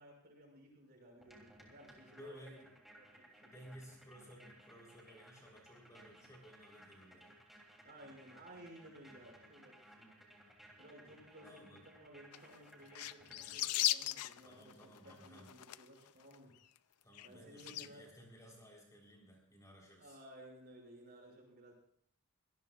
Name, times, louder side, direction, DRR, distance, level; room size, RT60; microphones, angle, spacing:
voice 1, 0.0-2.6 3.0-3.5 7.8-10.5 10.8-16.5 17.2-18.0 20.0-21.7, right 1 dB, 45° right, -1 dB, 6.4 m, -57 dB
gap filla, 1.2-14.0, right 1 dB, ahead, 3.2 m, -61 dB
voice 2, 2.1-2.6 3.4-7.3 11.4-11.8 14.4-15.5 17.0-20.2, equal, 15° left, -1 dB, 3.8 m, -57 dB
sound 1, 12.3-12.6 12.9-16.1 16.3-16.4 16.8-16.9 17.1-17.3 17.6-17.9, left 14 dB, 85° left, 0.5 m, -37 dB
25.0 x 18.5 x 2.4 m, 0.63 s
head